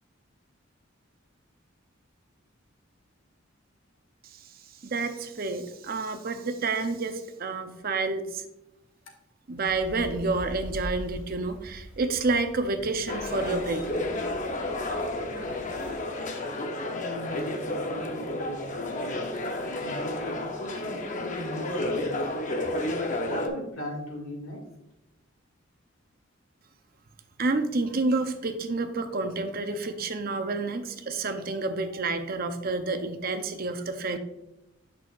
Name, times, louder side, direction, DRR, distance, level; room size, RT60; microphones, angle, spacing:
voice 1, 4.8-8.4 9.5-13.9 27.4-34.2, right 3 dB, 50° right, 8 dB, 0.6 m, -29 dB
sound 1, 9.6-15.9, equal, 5° right, 2.7 m, -42 dB
sound 2, 13.1-23.5, left 1 dB, 40° left, 0.7 m, -31 dB
voice 2, 16.9-18.7 19.7-22.2 23.3-24.6, equal, 90° left, 0 dB, 2.1 m, -38 dB
8.6 x 6.2 x 2.4 m, 0.90 s
head